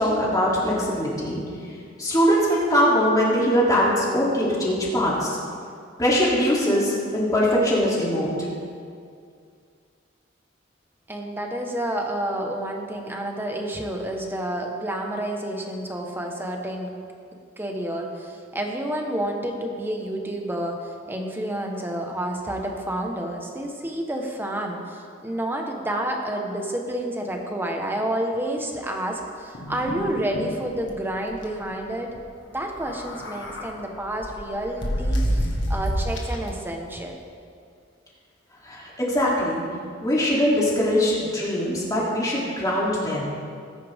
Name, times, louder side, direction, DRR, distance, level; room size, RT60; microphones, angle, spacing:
voice 1, 0.0-1.4 2.0-5.4 6.0-8.5 38.6-39.6 40.0-43.2, equal, 20° left, -6 dB, 3.1 m, -22 dB
voice 2, 11.1-16.9 17.6-32.2 32.5-37.2, right 1 dB, 10° right, 1 dB, 1.3 m, -29 dB
sound 1, 29.5-30.5 30.9-31.0 31.3-31.5 32.7-33.7 34.2-36.5, equal, 65° left, 1.7 m, -27 dB
19.0 x 10.0 x 3.7 m, 2.3 s
head